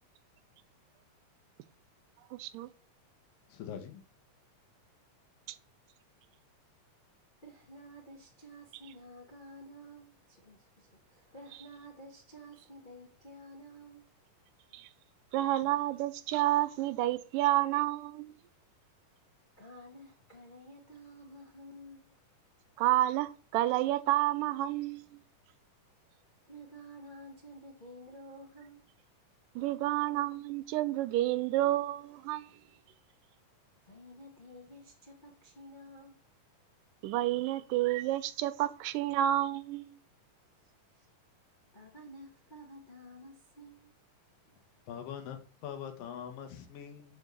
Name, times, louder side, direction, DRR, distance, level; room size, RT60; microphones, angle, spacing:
voice 1, 2.3-2.7 5.5-5.6 14.7-14.9 15.3-18.3 22.8-25.2 29.6-32.5 37.0-39.9, right 14 dB, 90° right, 2.2 m, -30 dB
voice 2, 3.5-4.0 44.9-47.2, left 8 dB, 85° left, 3.0 m, -43 dB
voice 3, 7.4-14.3 15.4-15.5 18.5-18.6 19.6-22.2 26.2-28.9 32.2-32.6 33.8-36.2 40.5-41.1 41.4-44.0 44.4-45.0, equal, 30° left, 0.8 m, -52 dB
7.1 x 5.4 x 6.7 m
omnidirectional pair, 3.8 m